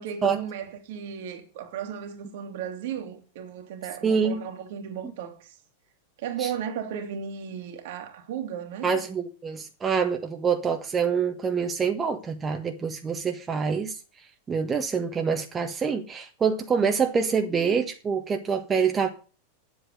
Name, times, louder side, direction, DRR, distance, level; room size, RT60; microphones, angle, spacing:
voice 1, 0.0-5.6 6.2-9.0, right 8 dB, 60° right, 2.4 m, -35 dB
voice 2, 4.0-4.4 6.4-6.5 8.8-14.0 14.5-19.1, right 6 dB, 20° right, 1.5 m, -26 dB
9.7 x 8.1 x 6.7 m
figure-of-eight pair, 90°, 0 cm